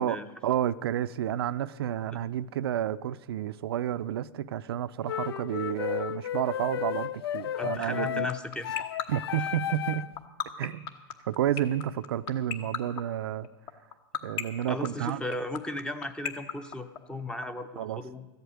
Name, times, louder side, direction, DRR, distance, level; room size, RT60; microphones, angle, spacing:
voice 1, 0.0-8.3 9.1-10.1 10.6-10.9 11.3-13.5 14.2-15.2 17.8-18.0, right 11 dB, 80° right, 0.5 m, -30 dB
sound 1, 5.1-10.2, left 11 dB, 85° left, 0.4 m, -33 dB
voice 2, 7.6-8.8 9.4-9.5 14.7-18.3, left 1 dB, 5° left, 0.7 m, -36 dB
sound 2, 7.8-17.4, left 8 dB, 40° left, 1.1 m, -32 dB
13.5 x 8.1 x 8.3 m
supercardioid pair, 140°, 13 cm